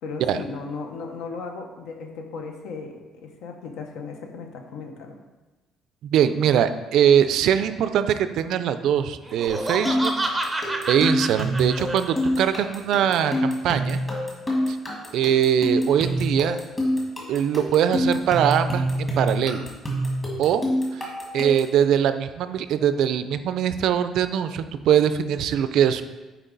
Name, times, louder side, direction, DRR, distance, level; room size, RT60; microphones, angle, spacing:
voice 1, 0.0-5.2, left 4 dB, 75° left, 3 dB, 1.0 m, -36 dB
voice 2, 6.0-10.1 10.4-10.6 10.9-14.0 14.7-14.8 15.1-16.6 17.3-19.7 20.4-20.6 20.9-21.1 21.3-26.0, right 9 dB, 60° right, 11 dB, 0.4 m, -22 dB
Laughter, 9.2-12.5, right 1 dB, 5° right, 0.6 m, -29 dB
sound 1, 9.5-21.8, equal, 20° left, 1.5 m, -26 dB
8.2 x 4.7 x 3.9 m, 1.2 s
cardioid pair, 175°, 0 cm